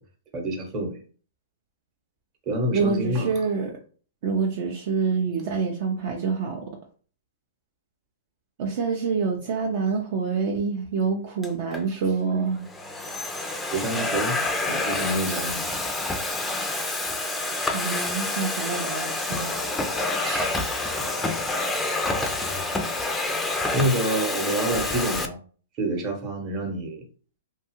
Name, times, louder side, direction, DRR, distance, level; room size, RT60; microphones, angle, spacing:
voice 1, 0.3-1.0 2.5-3.4 13.7-14.4 14.6-15.7 20.2-20.6 23.7-25.4 25.8-27.0, right 1 dB, 30° right, 3 dB, 0.9 m, -27 dB
voice 2, 2.7-3.7 4.2-6.7 8.6-12.7 17.7-19.6, right 5 dB, 50° right, 1 dB, 0.5 m, -26 dB
Domestic sounds home sounds, 11.4-11.8 12.5-25.3, left 2 dB, 5° left, 0.4 m, -28 dB
2.7 x 2.3 x 2.9 m, 0.41 s
hypercardioid pair, 135°, 0 cm